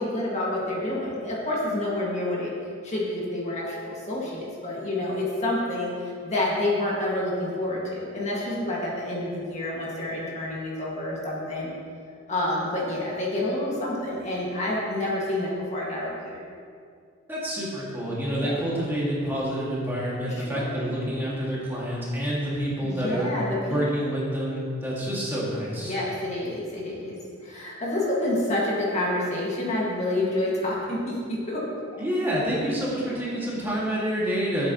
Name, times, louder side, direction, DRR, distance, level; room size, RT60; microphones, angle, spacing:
voice 1, 0.0-2.5 2.8-11.7 12.3-16.4 18.3-18.5 20.2-20.8 22.8-23.8 25.8-27.1 27.4-31.6, left 1 dB, 35° left, -5 dB, 1.9 m, -28 dB
voice 2, 17.3-23.3 23.7-25.9 32.0-34.7, equal, 10° right, -7 dB, 2.0 m, -28 dB
13.0 x 8.4 x 3.0 m, 2.3 s
head